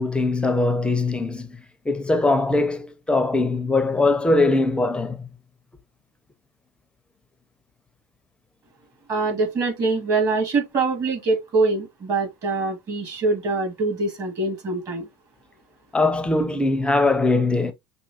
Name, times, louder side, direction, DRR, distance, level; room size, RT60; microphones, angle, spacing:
voice 1, 0.0-1.6 1.9-5.3 15.9-17.7, left 2 dB, 10° left, 0.5 m, -21 dB
voice 2, 9.1-15.1, right 3 dB, 40° right, 2.2 m, -24 dB
5.9 x 2.3 x 2.7 m
supercardioid pair, 110°, 10 cm